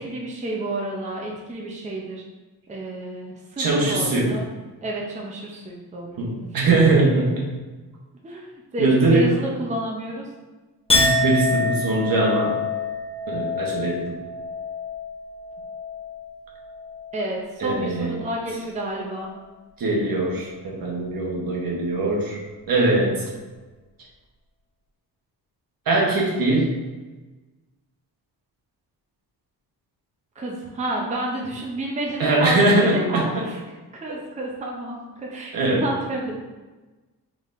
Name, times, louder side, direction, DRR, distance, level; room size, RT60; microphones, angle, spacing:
voice 1, 0.0-2.2 2.7-4.5 4.8-6.8 8.2-10.3 17.1-19.3 30.4-33.6 33.9-36.4, right 1 dB, 20° right, -2 dB, 0.6 m, -30 dB
voice 2, 3.6-4.3 6.2-7.5 8.8-9.3 10.9-12.6 13.3-14.2 17.6-18.2 19.8-22.4 22.7-23.2 25.9-26.8 32.2-33.2 35.5-35.8, right 2 dB, 65° right, -2 dB, 1.1 m, -21 dB
Chink clink, 10.9-17.5 17.8-18.4, left 3 dB, 15° left, 1.0 m, -27 dB
4.0 x 3.6 x 2.5 m, 1.2 s
cardioid pair, 110°, 38 cm